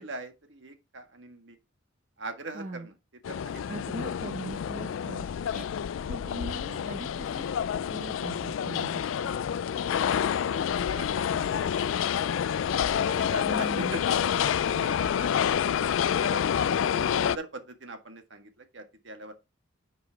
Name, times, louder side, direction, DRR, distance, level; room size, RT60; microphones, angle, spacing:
voice 1, 0.0-1.6 2.2-2.9 3.3-3.6 9.0-9.3 10.3-11.7 12.0-14.2 14.4-15.9 16.2-16.5 16.9-19.3, right 2 dB, 65° right, 1.6 m, -42 dB
voice 2, 2.5-2.9 3.7-5.7 6.1-7.6 7.9-9.3 13.5-14.0, right 1 dB, 40° right, 0.9 m, -40 dB
sound 1, 3.2-17.4, left 8 dB, 80° left, 0.3 m, -28 dB
10.5 x 5.4 x 3.5 m
head